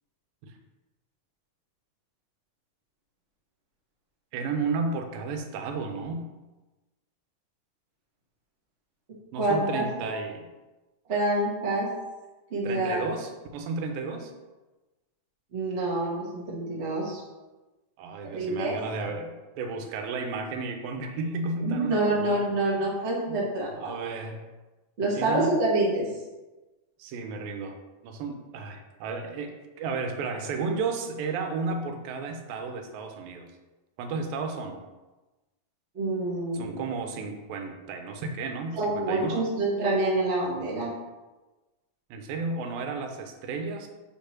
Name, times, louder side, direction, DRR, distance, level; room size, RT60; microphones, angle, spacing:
voice 1, 4.3-6.3 9.3-10.5 12.6-14.3 18.0-22.5 23.3-23.4 23.8-24.5 25.2-25.5 27.0-27.8 28.0-33.5 34.0-34.8 36.5-39.5 42.1-43.9, right 4 dB, 85° right, 5 dB, 2.5 m, -33 dB
voice 2, 9.4-9.8 11.1-11.9 12.5-13.0 15.5-17.2 18.3-18.8 21.6-23.9 25.0-26.1 35.9-36.8 38.7-40.9, right 2 dB, 35° right, -4 dB, 1.0 m, -27 dB
5.2 x 5.0 x 5.9 m, 1.1 s
omnidirectional pair, 4.0 m